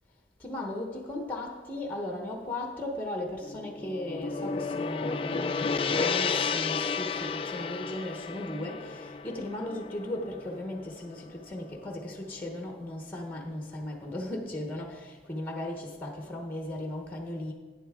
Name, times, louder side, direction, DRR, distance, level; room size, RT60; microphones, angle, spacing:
voice 1, 0.4-17.5, left 1 dB, 10° left, 2 dB, 0.9 m, -37 dB
Gong, 3.4-11.8, left 5 dB, 30° left, 0.3 m, -32 dB
11.0 x 9.0 x 3.7 m, 1.3 s
head